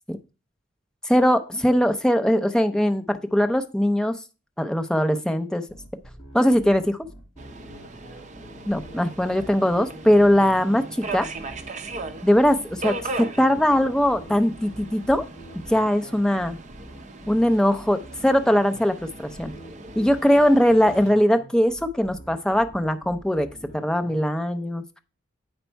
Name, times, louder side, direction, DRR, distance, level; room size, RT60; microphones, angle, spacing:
voice 1, 1.0-4.2 4.6-5.6 6.3-7.0 8.7-11.3 12.2-15.2 15.7-16.6 17.3-19.5 20.0-23.5 23.7-25.0, equal, 5° left, 7 dB, 0.5 m, -21 dB
sound 1, 5.7-24.2, equal, 25° left, 2.9 m, -46 dB
Subway metro underground, 7.4-21.1, right 2 dB, 40° right, 0.7 m, -38 dB
8.0 x 5.2 x 4.4 m, 0.32 s
head